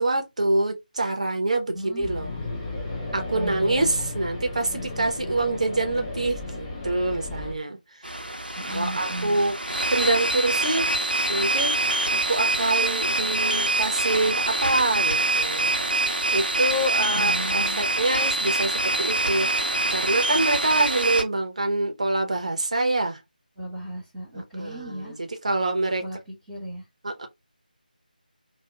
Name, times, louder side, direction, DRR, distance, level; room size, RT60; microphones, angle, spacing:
voice 1, 0.0-2.3 3.1-7.8 8.6-9.5 9.9-10.9 11.3-11.7 12.3-15.7 16.3-23.2 24.3-26.0 27.0-27.3, right 2 dB, 45° right, 0.7 m, -26 dB
voice 2, 1.7-2.1 3.3-4.1 8.6-9.4 17.1-17.8 23.6-25.1 26.0-26.2 26.5-26.9, right 1 dB, 10° right, 1.2 m, -35 dB
sound 1, 2.0-7.5, left 2 dB, 10° left, 0.3 m, -34 dB
sound 2, 8.0-21.2, right 2 dB, 85° right, 0.6 m, -25 dB
2.8 x 2.3 x 2.2 m
figure-of-eight pair, 160°, 5 cm